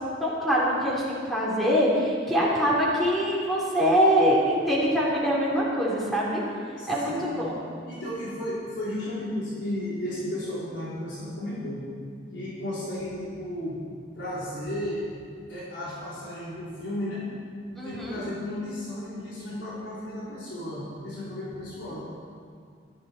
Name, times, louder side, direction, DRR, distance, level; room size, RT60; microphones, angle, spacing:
voice 1, 0.2-6.4 6.9-7.5 17.8-18.2, equal, ahead, -6 dB, 3.8 m, -24 dB
voice 2, 6.7-7.5 7.9-11.9 12.3-13.8 14.1-15.1 15.5-17.3 17.8-22.1, left 1 dB, 85° left, -9 dB, 3.9 m, -34 dB
15.5 x 13.5 x 4.6 m, 2.2 s
head